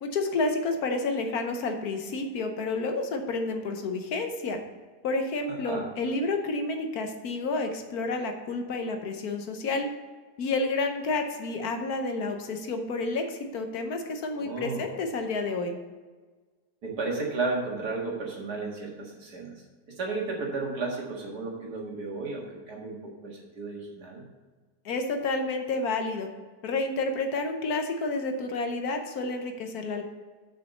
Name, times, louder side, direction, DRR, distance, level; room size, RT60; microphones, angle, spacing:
voice 1, 0.0-4.6 5.0-9.9 10.4-15.7 24.8-26.3 26.6-30.0, left 3 dB, 65° left, 5 dB, 1.3 m, -30 dB
voice 2, 14.4-14.8 16.8-19.5 20.0-23.0 23.2-24.2, right 3 dB, 70° right, -2 dB, 2.2 m, -33 dB
6.3 x 5.8 x 6.6 m, 1.4 s
omnidirectional pair, 1.8 m